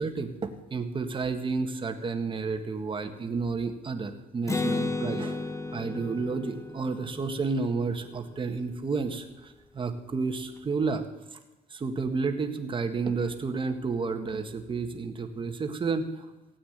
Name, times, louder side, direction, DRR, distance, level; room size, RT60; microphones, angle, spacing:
voice 1, 0.0-11.0 11.3-11.4 11.7-16.3, right 4 dB, 30° right, 6 dB, 1.8 m, -31 dB
Acoustic guitar, 4.5-8.1, left 3 dB, 15° left, 1.1 m, -33 dB
16.5 x 8.7 x 8.9 m, 1.1 s
cardioid pair, 110°, 17 cm